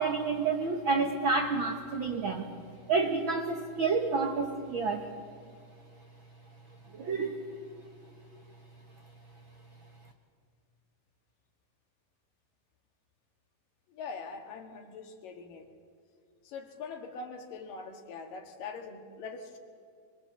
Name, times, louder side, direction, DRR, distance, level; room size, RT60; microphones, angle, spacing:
voice 1, 0.0-2.5 2.9-5.1 6.9-7.5, right 4 dB, 60° right, 3 dB, 1.3 m, -29 dB
voice 2, 13.9-15.7 16.4-19.6, left 4 dB, 75° left, 4 dB, 3.3 m, -43 dB
22.5 x 22.5 x 7.7 m, 2.3 s
omnidirectional pair, 3.9 m